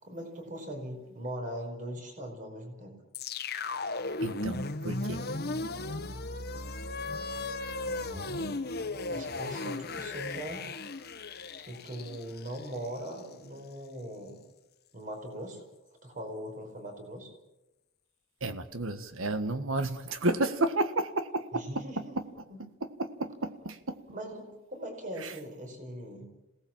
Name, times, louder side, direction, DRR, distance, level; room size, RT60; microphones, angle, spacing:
voice 1, 0.0-3.0 7.9-8.6 9.1-10.6 11.6-14.4 14.9-15.6 16.0-17.3 21.5-22.6 24.1-26.3, equal, 40° right, 4 dB, 5.2 m, -40 dB
sound 1, 3.1-13.3, left 2 dB, 50° left, 1.4 m, -36 dB
voice 2, 4.2-5.2 18.4-21.6 23.0-23.8, right 2 dB, 65° right, 10 dB, 1.7 m, -31 dB
27.0 x 18.5 x 7.5 m, 0.98 s
head